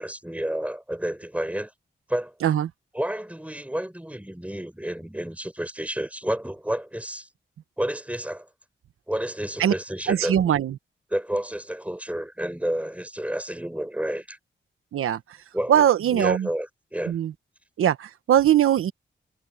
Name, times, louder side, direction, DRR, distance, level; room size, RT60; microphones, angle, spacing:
voice 1, 0.0-1.7 2.1-2.3 2.9-7.3 7.8-8.5 9.1-10.4 11.1-14.4 15.5-17.1, right 1 dB, 5° right, 5.3 m, -30 dB
voice 2, 10.1-10.8 14.9-15.2 15.7-16.5 17.1-17.3 17.8-18.9, right 10 dB, 85° right, 1.2 m, -21 dB
supercardioid pair, 45°, 21 cm